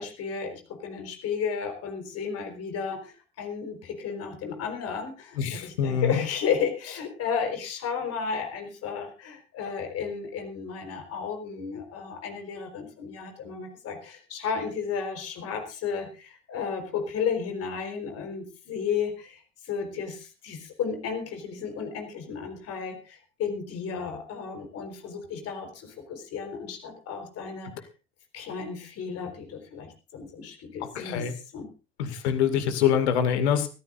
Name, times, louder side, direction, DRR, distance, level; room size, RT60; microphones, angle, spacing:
voice 1, 0.0-27.7 28.3-31.7 32.1-32.2, left 6 dB, 45° left, 5 dB, 4.4 m, -33 dB
voice 2, 5.4-6.2 30.9-31.3 32.0-33.7, left 8 dB, 65° left, 9 dB, 2.3 m, -25 dB
24.0 x 14.0 x 2.6 m, 0.32 s
figure-of-eight pair, 65°, 35 cm